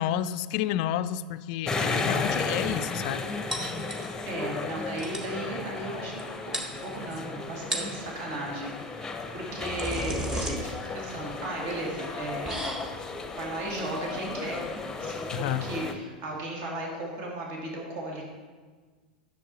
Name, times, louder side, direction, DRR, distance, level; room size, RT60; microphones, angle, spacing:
voice 1, 0.0-3.2 15.3-15.7, left 11 dB, 50° left, 13 dB, 0.3 m, -30 dB
sound 1, 1.7-15.9, left 3 dB, 10° left, 0.8 m, -34 dB
sound 2, 3.5-4.4 4.7-4.8 5.0-5.4 6.2-6.3 6.5-7.2 7.6-8.0 9.2-15.9, right 1 dB, 10° right, 1.6 m, -36 dB
voice 2, 4.3-12.6 13.4-14.7 14.9-18.3, right 1 dB, 50° right, -1 dB, 2.2 m, -36 dB
10.5 x 6.8 x 4.1 m, 1.5 s
hypercardioid pair, 95°, 5 cm